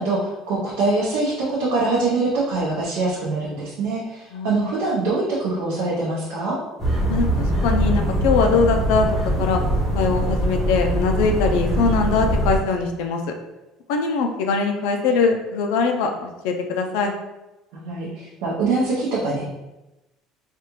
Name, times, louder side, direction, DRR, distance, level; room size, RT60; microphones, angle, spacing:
voice 1, 0.0-6.6 17.7-19.5, right 3 dB, 80° right, -6 dB, 0.7 m, -24 dB
voice 2, 4.3-4.7 7.1-9.6 9.9-13.3 13.9-17.1, left 4 dB, 85° left, 3 dB, 0.4 m, -22 dB
sound 1, 6.8-12.6, right 1 dB, 5° right, 1.2 m, -22 dB
3.4 x 2.4 x 3.0 m, 1.0 s
cardioid pair, 180°, 0 cm